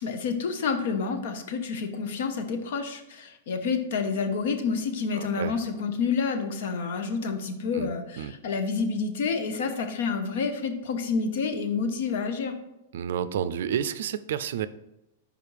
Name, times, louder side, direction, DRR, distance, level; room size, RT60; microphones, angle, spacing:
voice 1, 0.0-12.6, left 5 dB, 65° left, 7 dB, 0.9 m, -29 dB
voice 2, 5.1-5.5 7.7-7.9 8.2-8.3 12.9-14.7, right 9 dB, 70° right, 13 dB, 0.4 m, -30 dB
5.1 x 5.0 x 4.7 m, 0.91 s
supercardioid pair, 155°, 0 cm